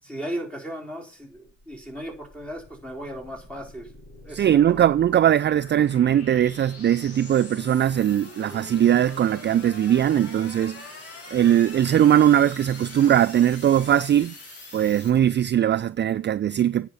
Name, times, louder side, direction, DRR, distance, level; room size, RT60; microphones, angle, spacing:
voice 1, 0.0-3.9 4.2-4.8, equal, 5° left, 4.2 m, -36 dB
sound 1, 1.4-15.1, left 2 dB, 50° left, 7.3 m, -43 dB
voice 2, 4.3-10.9 11.3-14.3 14.7-16.9, right 10 dB, 35° right, 0.4 m, -20 dB
9.8 x 8.0 x 5.6 m
cardioid pair, 90°, 30 cm